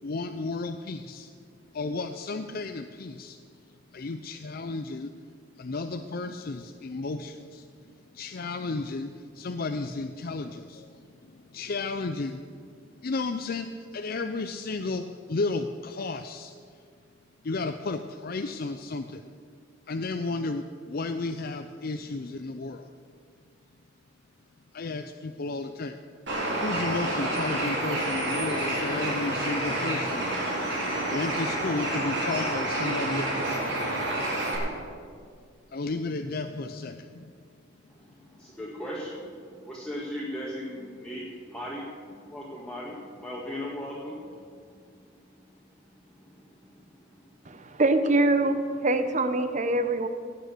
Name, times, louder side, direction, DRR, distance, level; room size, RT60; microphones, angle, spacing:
voice 1, 0.0-1.3 1.7-3.4 3.9-5.2 5.6-16.8 17.4-19.3 19.9-22.9 24.7-26.0 26.6-30.3 31.1-33.6 35.7-37.3, left 3 dB, 50° left, 7 dB, 0.5 m, -33 dB
Bird, 26.3-34.6, right 1 dB, 65° right, 4.1 m, -29 dB
voice 2, 37.9-45.4 46.0-47.3, equal, 5° left, -6 dB, 1.7 m, -39 dB
voice 3, 47.5-48.6 48.8-50.1, right 2 dB, 40° right, 10 dB, 0.9 m, -24 dB
16.5 x 9.0 x 6.7 m, 2.1 s
head